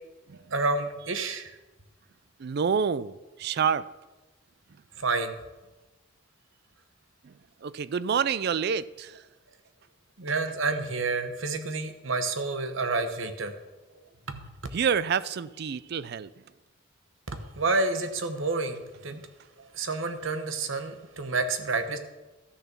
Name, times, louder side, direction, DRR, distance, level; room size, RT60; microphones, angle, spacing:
voice 1, 0.5-1.5 5.0-5.3 10.2-13.5 14.3-14.4 17.3-19.2 19.7-22.0, right 3 dB, 75° right, 1.0 m, -29 dB
voice 2, 2.4-3.9 7.2-7.3 7.6-9.2 14.7-16.3, right 6 dB, 55° right, 0.4 m, -28 dB
12.5 x 6.7 x 6.0 m
head